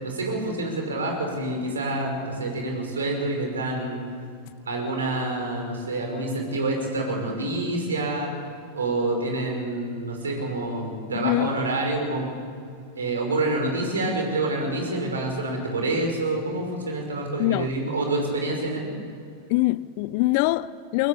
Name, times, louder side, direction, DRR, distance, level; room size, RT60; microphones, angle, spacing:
voice 1, 0.0-4.0 4.7-8.3 8.7-12.3 12.9-18.9, right 2 dB, 70° right, 5.6 m, -27 dB
voice 2, 11.1-11.5 17.4-17.7 19.5-21.1, left 19 dB, 45° left, 0.5 m, -23 dB
23.5 x 19.0 x 7.3 m
figure-of-eight pair, 90°, 0 cm